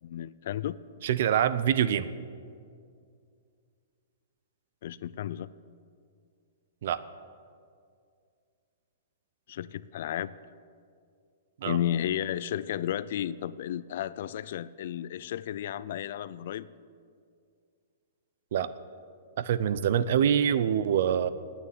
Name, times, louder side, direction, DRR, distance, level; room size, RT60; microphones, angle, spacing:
voice 1, 0.0-0.8 4.8-5.5 9.5-10.3 11.6-16.7, left 11 dB, 55° left, 18 dB, 0.4 m, -33 dB
voice 2, 1.0-2.1 6.8-7.0 11.6-11.8 18.5-18.7 19.4-21.3, right 9 dB, 60° right, 15 dB, 0.6 m, -25 dB
9.8 x 8.9 x 9.0 m, 2.3 s
hypercardioid pair, 155°, 0 cm